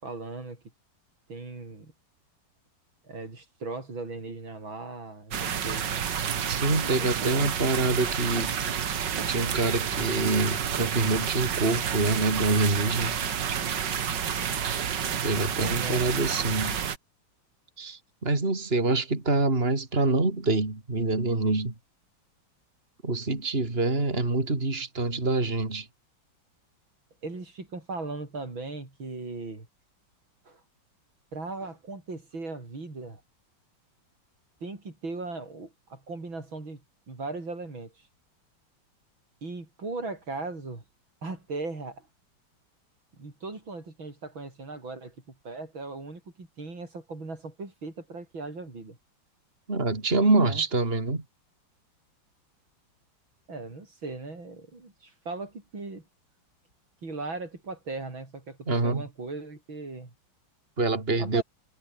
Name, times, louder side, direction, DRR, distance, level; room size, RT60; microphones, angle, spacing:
voice 1, 0.0-0.6 1.3-1.9 3.0-5.9 6.8-7.5 15.6-16.1 27.2-29.7 30.4-30.6 31.3-33.2 34.6-36.8 37.1-38.0 39.4-40.8 41.2-42.1 43.2-49.0 50.4-50.6 53.5-56.1 57.0-60.1 61.2-61.4, right 3 dB, 80° right, 6.4 m, -38 dB
sound 1, 5.3-17.0, right 8 dB, 65° right, 2.1 m, -29 dB
voice 2, 6.5-8.5 9.3-13.2 15.2-16.8 17.8-21.7 23.0-25.9 49.7-51.2 58.7-59.0 60.8-61.4, right 3 dB, 30° right, 3.8 m, -26 dB
omnidirectional pair, 2.1 m